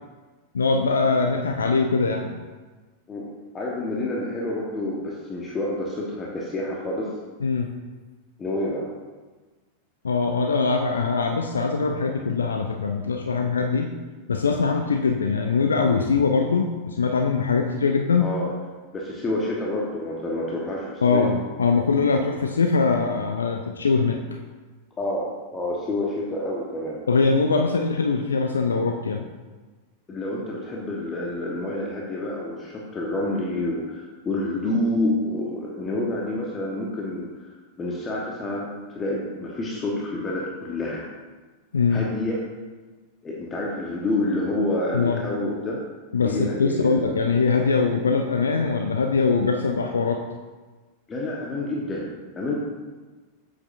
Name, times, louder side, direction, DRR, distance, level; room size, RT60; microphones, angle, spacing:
voice 1, 0.5-2.3 7.4-7.7 10.0-13.9 14.3-18.4 21.0-24.2 27.1-29.3 41.7-42.1 44.9-45.2 46.1-50.2, left 4 dB, 70° left, 4 dB, 0.5 m, -22 dB
voice 2, 3.5-7.1 8.4-8.9 18.2-18.5 18.9-21.3 25.0-27.0 30.1-41.0 41.9-42.4 43.2-45.8 46.2-47.0 51.1-52.1 52.4-52.5, left 1 dB, 20° left, -3 dB, 1.2 m, -28 dB
8.1 x 8.1 x 2.6 m, 1.3 s
figure-of-eight pair, 90°, 0 cm